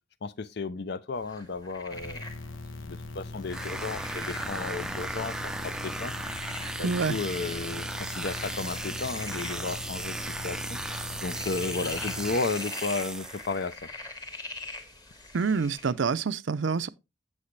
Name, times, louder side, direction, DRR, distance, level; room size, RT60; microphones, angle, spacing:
voice 1, 0.2-2.2 2.9-6.1 6.8-10.8 11.2-13.7, left 3 dB, 55° left, 0.6 m, -33 dB
sound 1, 1.1-15.9, left 3 dB, 20° left, 1.3 m, -44 dB
sound 2, 1.9-12.3, left 2 dB, 80° left, 1.0 m, -41 dB
sound 3, 3.5-13.6, right 1 dB, 5° right, 0.4 m, -36 dB
voice 2, 6.8-7.2 15.3-16.9, right 5 dB, 70° right, 0.5 m, -27 dB
8.1 x 7.4 x 3.2 m
head